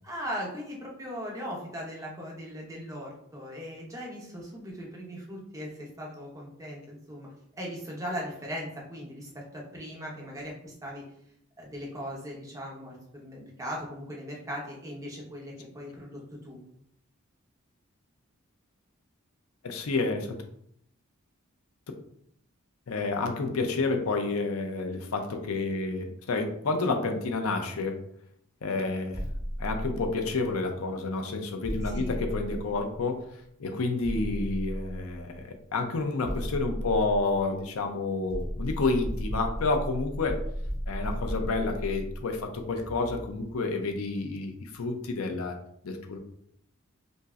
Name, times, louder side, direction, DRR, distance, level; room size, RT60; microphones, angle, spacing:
voice 1, 0.0-7.3 7.6-11.0 11.6-16.6 31.9-32.2, equal, 15° right, -3 dB, 0.9 m, -39 dB
voice 2, 19.6-20.3 22.9-28.0 28.6-29.3 29.6-33.3 33.6-40.4 40.9-45.6 45.8-46.2, left 3 dB, 85° left, 5 dB, 0.5 m, -29 dB
sound 1, 29.1-30.6 31.6-33.2 34.0-35.4 36.2-37.8 38.3-43.6, equal, 15° left, 0.9 m, -35 dB
5.2 x 2.0 x 2.4 m, 0.71 s
head